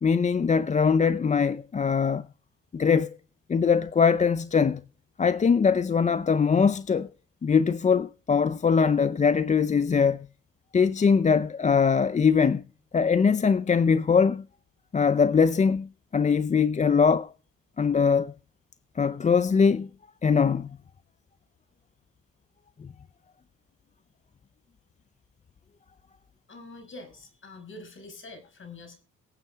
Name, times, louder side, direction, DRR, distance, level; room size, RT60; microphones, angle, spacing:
voice 1, 0.0-2.2 2.7-3.1 3.5-4.8 5.2-7.1 7.4-10.3 10.7-12.6 12.9-14.4 14.9-17.3 17.8-18.3 19.0-19.9 20.2-20.7, left 6 dB, 25° left, 0.5 m, -22 dB
voice 2, 26.5-29.0, left 2 dB, 40° left, 5.4 m, -45 dB
23.0 x 7.9 x 3.5 m
cardioid pair, 90°, 30 cm